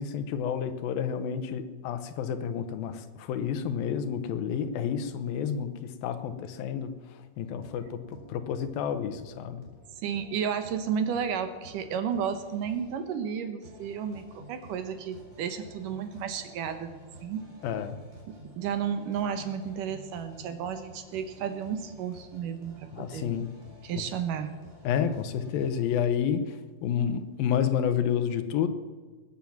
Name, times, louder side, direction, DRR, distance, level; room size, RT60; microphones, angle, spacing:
voice 1, 0.0-8.0 8.3-9.6 17.6-18.0 22.9-23.5 24.0-24.1 24.8-28.7, left 8 dB, 80° left, 10 dB, 2.7 m, -30 dB
sound 1, 7.5-26.0, equal, 20° right, 4.4 m, -51 dB
voice 2, 10.0-16.9 17.2-17.4 18.3-23.4 23.8-24.5, right 7 dB, 70° right, 9 dB, 2.4 m, -32 dB
20.5 x 9.3 x 7.2 m, 1.4 s
omnidirectional pair, 4.2 m